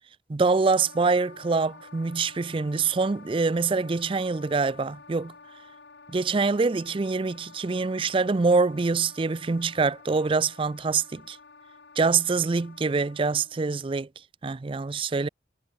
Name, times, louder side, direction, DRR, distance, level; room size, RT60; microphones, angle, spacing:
voice 1, 0.3-5.3 6.1-11.4 12.0-14.1 14.4-15.3, right 4 dB, 30° right, 0.4 m, -25 dB
Wind instrument woodwind instrument, 0.8-13.7, left 4 dB, 75° left, 1.7 m, -50 dB
head